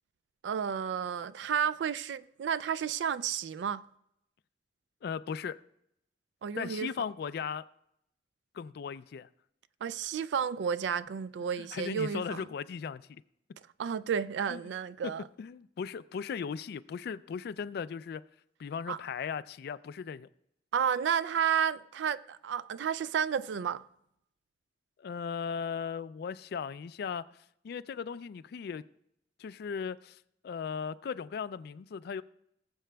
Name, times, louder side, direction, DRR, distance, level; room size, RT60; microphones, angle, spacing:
voice 1, 0.4-3.8 6.4-6.9 9.8-12.4 13.8-15.2 18.9-19.0 20.7-23.8, right 7 dB, 75° right, 0.3 m, -31 dB
voice 2, 5.0-5.6 6.6-7.6 8.5-9.3 11.6-13.2 14.5-14.6 15.0-15.1 15.4-18.2 18.6-20.3 25.0-27.3 27.6-28.8 29.4-30.2 30.4-32.2, left 6 dB, 60° left, 0.3 m, -37 dB
19.5 x 7.5 x 2.3 m
head